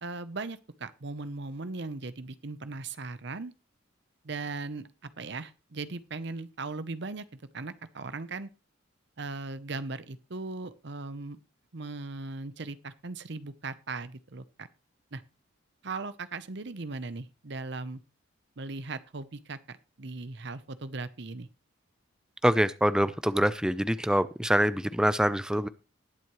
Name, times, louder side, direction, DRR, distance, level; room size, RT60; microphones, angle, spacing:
voice 1, 0.0-3.5 4.2-7.2 7.5-8.5 9.2-11.4 11.7-14.7 15.1-15.2 15.8-18.0 18.6-21.5, right 3 dB, 60° right, 14 dB, 0.8 m, -38 dB
voice 2, 22.4-25.7, equal, 5° right, 14 dB, 0.5 m, -25 dB
19.5 x 7.6 x 3.1 m, 0.29 s
head